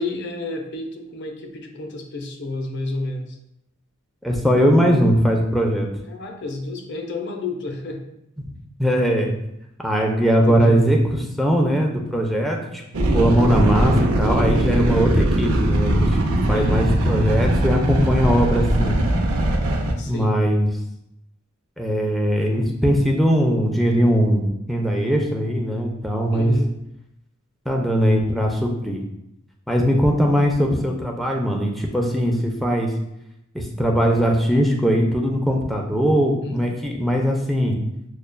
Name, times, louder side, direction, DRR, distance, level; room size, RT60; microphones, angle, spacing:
voice 1, 0.0-3.4 6.1-8.1 10.5-10.8 16.5-16.9 20.0-20.3 26.3-26.7 36.4-36.6, left 2 dB, 55° left, 4 dB, 0.6 m, -30 dB
voice 2, 4.2-5.9 8.4-8.5 8.8-9.3 9.8-12.8 13.1-19.0 20.1-20.7 21.8-26.5 27.7-29.0 29.7-32.9 33.5-37.8, equal, ahead, 1 dB, 0.4 m, -20 dB
sound 1, 12.9-19.9, right 1 dB, 90° right, 0.5 m, -20 dB
6.4 x 2.3 x 2.2 m, 0.81 s
head